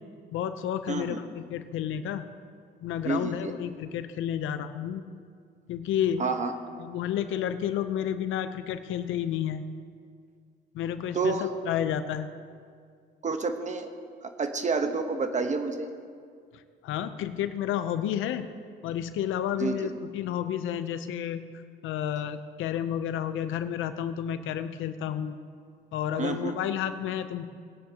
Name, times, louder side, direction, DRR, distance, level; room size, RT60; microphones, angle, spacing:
voice 1, 0.3-2.2 2.8-5.0 5.7-6.2 6.8-9.6 10.7-12.3 16.5-18.5 18.8-25.4 25.9-27.4, left 10 dB, 85° left, 10 dB, 0.7 m, -31 dB
voice 2, 0.9-1.2 3.0-3.5 6.2-6.5 11.1-11.5 13.2-13.9 14.2-15.9 19.6-19.9 26.2-26.6, right 4 dB, 35° right, 7 dB, 1.0 m, -29 dB
19.5 x 9.3 x 2.9 m, 2.2 s
cardioid pair, 90°, 20 cm